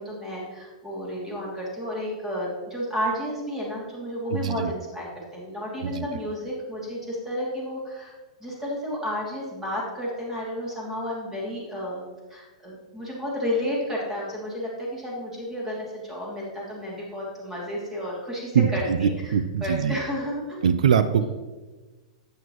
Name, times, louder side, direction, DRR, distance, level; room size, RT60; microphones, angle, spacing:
voice 1, 0.0-8.1 8.4-12.0 12.3-18.8 19.2-19.3 19.6-20.6 21.2-21.3, equal, 10° right, -4 dB, 2.7 m, -32 dB
voice 2, 4.3-4.7 5.8-6.1 18.5-20.0 20.6-21.3, right 7 dB, 85° right, 12 dB, 0.5 m, -22 dB
8.8 x 8.1 x 3.1 m, 1.2 s
hypercardioid pair, 145°, 4 cm